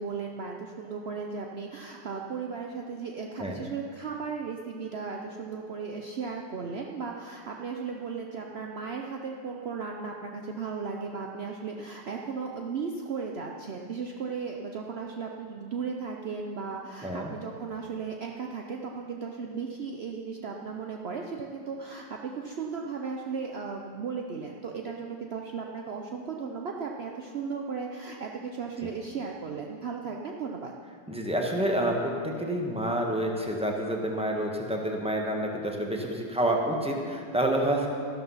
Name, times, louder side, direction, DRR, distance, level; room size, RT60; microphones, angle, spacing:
voice 1, 0.0-30.7, right 5 dB, 65° right, 1 dB, 0.6 m, -36 dB
voice 2, 31.1-37.9, right 1 dB, 5° right, 1 dB, 1.1 m, -28 dB
13.0 x 12.0 x 5.6 m, 2.3 s
omnidirectional pair, 2.0 m